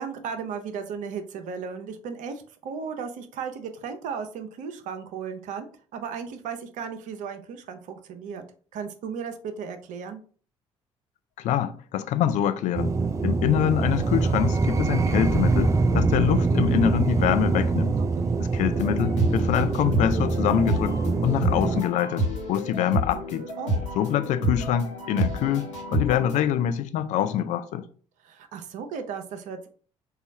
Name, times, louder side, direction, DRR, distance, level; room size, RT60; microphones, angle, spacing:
voice 1, 0.0-5.7 5.9-8.4 8.7-10.2 18.0-18.4 23.6-23.8 28.2-29.7, right 6 dB, 55° right, 0.6 m, -35 dB
voice 2, 11.4-18.0 18.5-20.9 21.2-23.4 24.0-27.8, left 10 dB, 50° left, 0.4 m, -25 dB
sound 1, 12.7-21.8, right 3 dB, 20° right, 0.3 m, -24 dB
sound 2, 18.7-26.4, right 1 dB, 80° left, 1.0 m, -29 dB
4.0 x 2.3 x 4.1 m
figure-of-eight pair, 50°, 16 cm